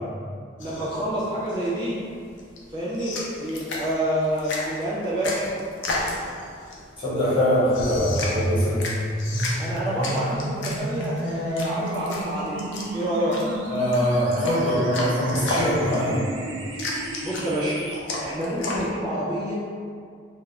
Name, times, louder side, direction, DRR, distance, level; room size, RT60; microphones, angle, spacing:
sound 1, 0.6-18.9, left 2 dB, 70° left, 0.5 m, -33 dB
voice 1, 0.6-2.0 2.7-5.5 9.6-12.6 12.9-13.6 17.2-17.8 18.2-19.5, equal, 25° right, -10 dB, 0.6 m, -27 dB
voice 2, 7.0-8.8 13.7-16.2, equal, 30° left, -11 dB, 1.0 m, -23 dB
sound 2, 8.0-18.0, right 1 dB, 85° right, 0.4 m, -31 dB
2.4 x 2.1 x 3.2 m, 2.2 s
head